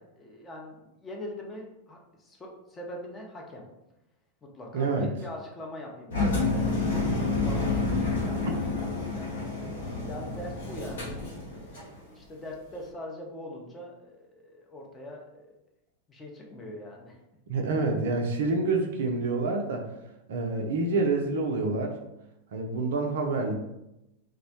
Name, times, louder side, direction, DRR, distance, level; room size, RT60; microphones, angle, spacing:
voice 1, 0.0-3.6 4.4-9.5 10.1-11.1 11.5-15.5 16.1-17.2, left 1 dB, 20° left, -1 dB, 0.5 m, -43 dB
voice 2, 4.7-5.1 17.5-19.9 20.3-21.9 22.5-23.5, right 3 dB, 60° right, 3 dB, 0.4 m, -27 dB
Engine, 6.1-11.9, left 3 dB, 65° left, 0.8 m, -29 dB
2.2 x 2.0 x 2.7 m, 0.89 s
figure-of-eight pair, 90°, 0 cm